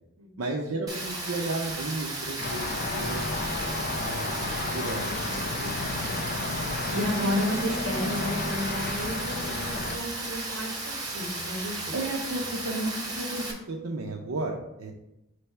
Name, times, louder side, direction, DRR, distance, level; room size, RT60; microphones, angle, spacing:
voice 1, 0.4-3.3 4.0-5.4 11.9-14.9, right 2 dB, 90° right, 0 dB, 0.6 m, -33 dB
Rain, 0.9-13.5, right 2 dB, 20° right, 1.3 m, -35 dB
sound 1, 2.4-10.0, left 3 dB, 45° left, 0.5 m, -32 dB
voice 2, 5.6-6.4 6.9-11.9, equal, 65° right, 0 dB, 1.3 m, -32 dB
5.2 x 3.3 x 5.6 m, 0.89 s
head